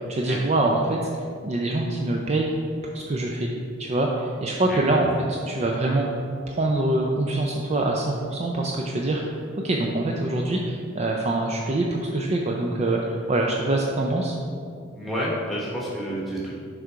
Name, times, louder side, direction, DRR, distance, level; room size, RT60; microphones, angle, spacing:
voice 1, 0.1-1.0 1.4-2.5 2.9-3.5 3.8-9.4 9.6-14.4, right 2 dB, 35° right, 0 dB, 0.4 m, -24 dB
voice 2, 4.7-5.1 14.9-16.6, equal, ahead, -6 dB, 1.2 m, -30 dB
6.4 x 3.7 x 4.6 m, 2.3 s
head